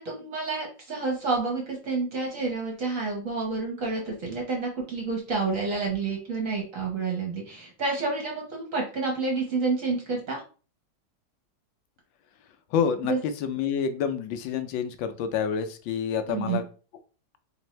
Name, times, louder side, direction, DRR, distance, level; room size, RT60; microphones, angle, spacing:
voice 1, 0.0-10.4 13.1-13.2 16.3-16.6, right 3 dB, 50° right, 0 dB, 1.2 m, -29 dB
voice 2, 12.7-13.1 13.4-16.6, left 7 dB, 75° left, 8 dB, 1.3 m, -28 dB
3.6 x 3.3 x 3.1 m, 0.37 s
omnidirectional pair, 2.1 m